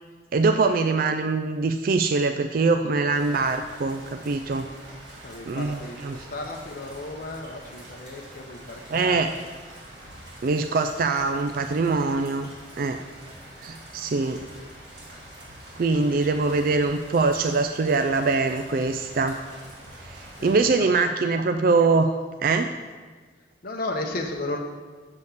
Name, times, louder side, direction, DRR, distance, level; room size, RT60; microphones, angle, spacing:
voice 1, 0.3-4.7 5.5-6.2 8.9-9.3 10.4-12.5 12.8-13.0 13.6-14.4 15.8-19.4 20.1-22.1 22.4-22.7, right 3 dB, 55° right, 7 dB, 0.4 m, -23 dB
sound 1, 3.1-20.7, right 1 dB, 70° right, 2.9 m, -45 dB
voice 2, 5.2-9.5 10.0-10.2 15.9-16.4 20.4-20.9 21.2-21.3 23.6-24.6, left 2 dB, 55° left, 1 dB, 0.9 m, -35 dB
6.9 x 6.3 x 7.2 m, 1.4 s
head